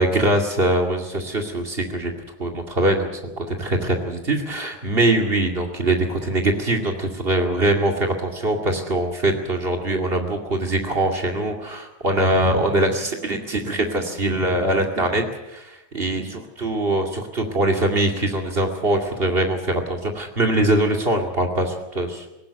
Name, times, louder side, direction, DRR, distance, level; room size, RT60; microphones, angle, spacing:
voice 1, 0.0-2.1 2.4-22.3, right 1 dB, 30° right, 2 dB, 1.0 m, -22 dB
20.0 x 18.0 x 8.3 m, 0.95 s
omnidirectional pair, 5.0 m